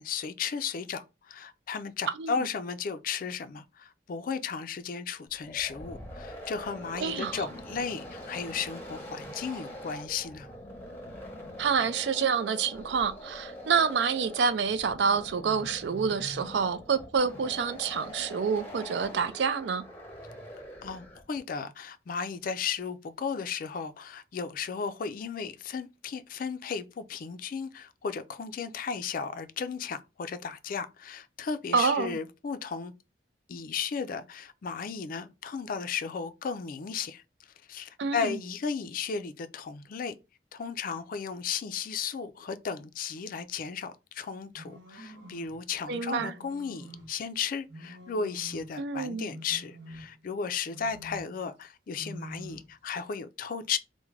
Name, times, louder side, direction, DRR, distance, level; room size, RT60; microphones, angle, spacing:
voice 1, 0.0-10.5 20.8-32.9 33.5-37.2 37.7-40.1 40.5-53.8, left 6 dB, 50° left, 0.4 m, -35 dB
sound 1, 5.3-21.4, equal, 10° left, 0.8 m, -44 dB
voice 2, 7.0-7.4 11.6-19.8 31.7-32.2 38.0-38.4 45.9-46.3 48.8-49.3, right 6 dB, 70° right, 0.4 m, -28 dB
sound 2, 44.5-45.6 46.1-47.2 47.7-48.8 49.2-50.3 50.7-51.4 51.9-52.7, equal, 85° right, 0.8 m, -46 dB
3.5 x 2.1 x 3.2 m
head